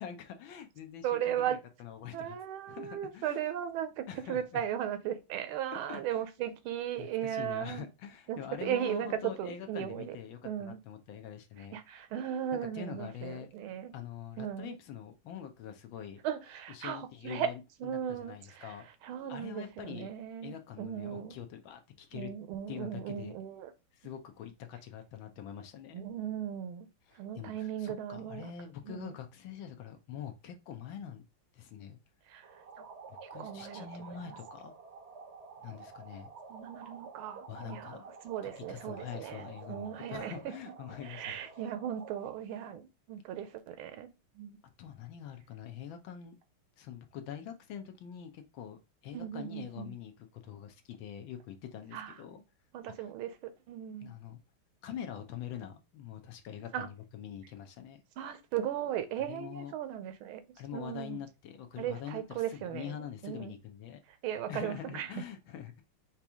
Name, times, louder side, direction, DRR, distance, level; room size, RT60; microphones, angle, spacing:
voice 1, 0.0-2.4 2.7-3.4 4.1-4.6 5.7-6.2 7.0-11.8 12.7-13.5 13.9-16.2 16.7-18.8 19.3-20.1 20.4-22.3 22.7-23.4 23.9-26.0 27.1-31.2 31.5-32.0 33.1-34.7 35.6-36.3 37.5-38.1 38.6-41.4 44.8-46.3 46.8-52.4 53.0-53.1 54.0-54.4 54.8-58.0 59.3-59.7 60.6-64.0 64.5-65.8, left 9 dB, 70° left, 1.4 m, -44 dB
voice 2, 1.0-1.6 2.1-7.9 8.3-10.2 10.4-10.8 11.7-13.9 14.4-14.8 16.2-17.5 17.8-18.7 19.0-21.4 22.1-23.7 25.9-26.9 27.2-28.5 28.9-29.1 32.3-32.4 33.2-34.2 36.5-38.0 38.2-40.5 41.0-44.1 44.3-44.6 49.1-49.9 51.9-52.1 52.7-53.4 53.7-54.1 56.7-56.9 58.2-60.4 60.7-61.2 61.8-63.5 64.2-65.1, right 10 dB, 85° right, 1.5 m, -37 dB
sound 1, 32.4-42.4, right 4 dB, 60° right, 0.7 m, -49 dB
5.1 x 2.9 x 3.5 m
omnidirectional pair, 2.3 m